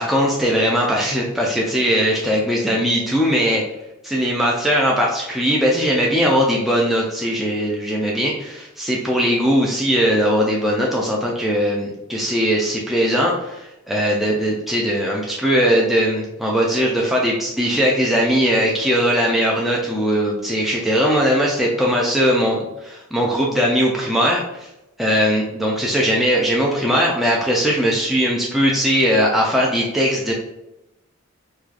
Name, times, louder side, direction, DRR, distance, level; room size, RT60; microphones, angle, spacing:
voice 1, 0.0-3.6 4.0-24.7 25.0-30.3, equal, ahead, -3 dB, 0.3 m, -19 dB
4.6 x 2.3 x 2.4 m, 0.91 s
head